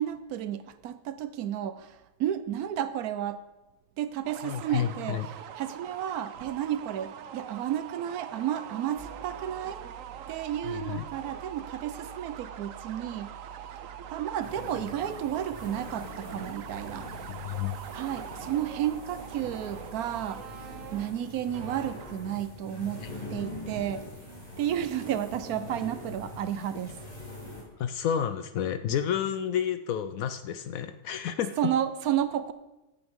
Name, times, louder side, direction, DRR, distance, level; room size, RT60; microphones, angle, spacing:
voice 1, 0.0-3.4 4.0-9.8 10.3-13.3 14.1-17.1 17.9-23.0 23.3-24.1 24.6-27.0 31.6-32.5, right 10 dB, 90° right, 12 dB, 1.2 m, -32 dB
sound 1, 4.2-22.4, right 9 dB, 70° right, 1.0 m, -44 dB
voice 2, 4.4-5.3 10.6-11.0 17.3-17.8 27.8-31.6, left 9 dB, 75° left, 10 dB, 1.0 m, -30 dB
sound 2, 9.0-20.9, right 6 dB, 30° right, 3.9 m, -50 dB
sound 3, 14.4-27.6, left 2 dB, 25° left, 3.7 m, -43 dB
15.5 x 8.9 x 3.6 m, 1.0 s
omnidirectional pair, 1.5 m